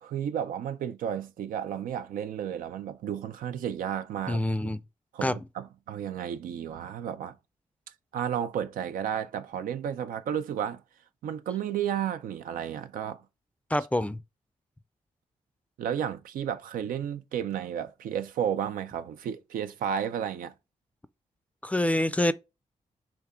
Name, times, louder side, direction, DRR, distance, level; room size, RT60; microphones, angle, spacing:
voice 1, 0.0-4.4 5.1-7.3 8.1-10.8 11.2-13.2 15.8-20.5, right 9 dB, 90° right, 0.4 m, -32 dB
voice 2, 4.3-4.8 5.2-5.4 13.7-14.2 21.6-22.3, left 1 dB, 10° left, 0.4 m, -26 dB
3.4 x 2.8 x 3.6 m
cardioid pair, 50°, 14 cm